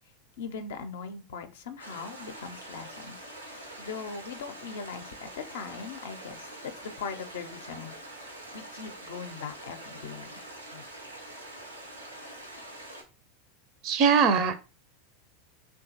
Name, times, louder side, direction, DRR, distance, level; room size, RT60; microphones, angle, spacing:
voice 1, 0.4-3.2 3.5-7.9 8.5-10.4 10.7-10.8, left 5 dB, 65° left, 8 dB, 0.4 m, -40 dB
sound 1, 1.8-13.0, right 1 dB, 90° right, 0.7 m, -45 dB
voice 2, 13.8-14.5, right 6 dB, 45° right, 10 dB, 0.5 m, -21 dB
3.0 x 2.2 x 2.8 m, 0.30 s
figure-of-eight pair, 80°, 0 cm